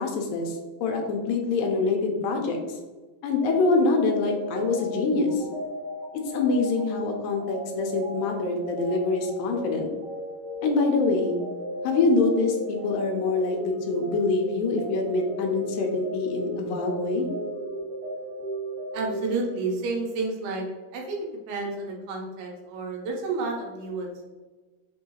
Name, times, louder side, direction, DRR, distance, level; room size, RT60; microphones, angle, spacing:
voice 1, 0.0-2.6 3.2-5.4 6.3-9.9 10.6-11.4 11.8-17.3, left 3 dB, 80° left, 2 dB, 2.1 m, -25 dB
sound 1, 3.4-20.0, right 1 dB, 70° right, 1.6 m, -36 dB
voice 2, 18.9-20.7 20.9-21.2 21.5-24.3, right 3 dB, 90° right, 0 dB, 2.9 m, -30 dB
6.0 x 2.7 x 2.8 m, 1.3 s
omnidirectional pair, 4.5 m